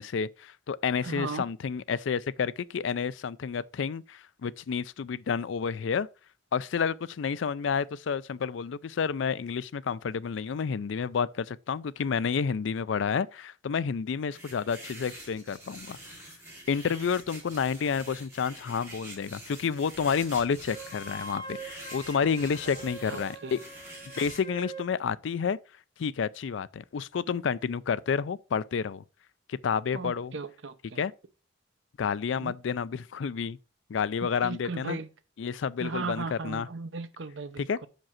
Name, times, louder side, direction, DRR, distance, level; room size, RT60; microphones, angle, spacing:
voice 1, 0.0-6.1 6.5-16.0 16.7-23.6 24.2-25.6 26.0-29.0 29.5-30.3 31.0-31.1 32.0-33.6 33.9-35.0 35.4-36.7 37.6-37.8, left 6 dB, 75° left, 0.4 m, -30 dB
voice 2, 1.0-1.5 23.0-23.6 29.9-31.0 32.4-32.5 34.2-35.1 35.8-37.9, right 4 dB, 70° right, 0.8 m, -37 dB
sound 1, 14.3-24.4, right 1 dB, 15° right, 3.0 m, -46 dB
Wind instrument woodwind instrument, 20.7-24.9, right 2 dB, 20° left, 4.3 m, -43 dB
5.9 x 5.2 x 5.7 m
head